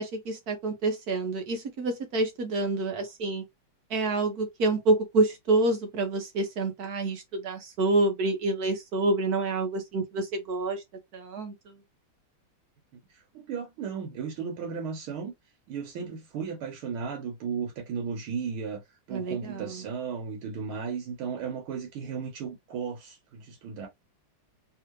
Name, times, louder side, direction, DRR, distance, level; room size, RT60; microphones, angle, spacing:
voice 1, 0.0-3.4 3.9-10.8 11.1-11.8 19.1-19.8, right 2 dB, 55° right, 1.3 m, -28 dB
voice 2, 13.1-15.3 15.7-18.8 19.1-23.9, right 6 dB, 75° right, 1.8 m, -35 dB
3.6 x 3.2 x 3.0 m
omnidirectional pair, 2.4 m